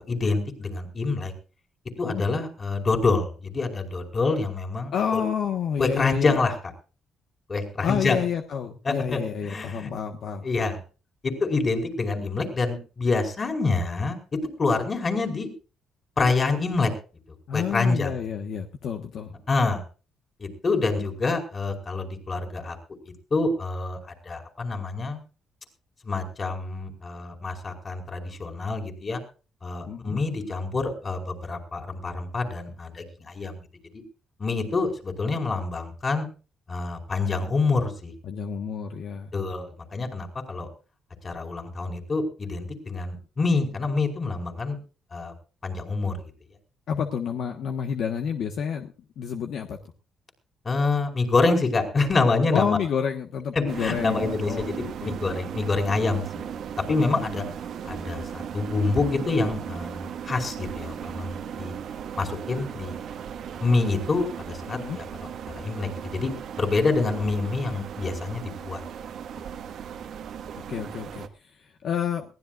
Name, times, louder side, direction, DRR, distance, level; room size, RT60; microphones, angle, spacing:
voice 1, 0.1-1.3 2.0-5.2 5.8-6.5 7.5-8.2 8.8-9.9 10.4-10.8 11.2-15.5 16.2-16.9 17.5-18.1 19.5-19.8 20.4-22.8 23.3-24.0 24.2-25.2 26.0-29.2 29.6-33.6 33.9-34.0 34.4-36.3 36.7-38.1 39.3-40.7 41.2-44.8 45.1-45.3 45.6-46.2 50.6-52.8 53.5-56.5 56.9-57.4 57.8-61.7 62.2-63.0 63.6-65.3 65.5-66.3 66.6-68.8, left 3 dB, 35° left, 4 dB, 5.0 m, -26 dB
voice 2, 4.9-6.4 7.8-10.5 17.5-19.3 29.9-30.2 38.2-39.3 46.9-49.8 52.5-55.2 56.9-57.5 64.7-65.0 70.7-72.2, left 7 dB, 70° left, 4 dB, 1.4 m, -29 dB
sound 1, 53.7-71.3, right 8 dB, 75° right, 1.6 m, -37 dB
21.5 x 16.5 x 2.5 m, 0.35 s
cardioid pair, 90°, 0 cm